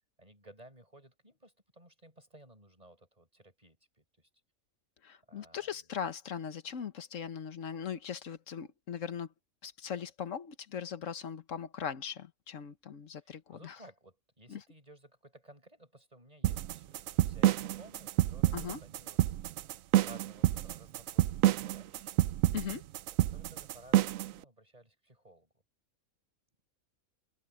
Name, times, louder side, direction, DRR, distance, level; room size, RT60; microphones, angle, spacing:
voice 1, 0.2-4.3 5.3-5.7 13.2-19.4 20.0-22.2 23.3-25.5, right 1 dB, 25° right, 7.7 m, -57 dB
voice 2, 5.0-9.3 9.6-13.8 14.5-14.6 18.5-18.8 22.5-22.8, left 8 dB, 70° left, 1.5 m, -39 dB
sound 1, 16.4-24.3, right 14 dB, 80° right, 1.0 m, -28 dB
omnidirectional pair, 1.4 m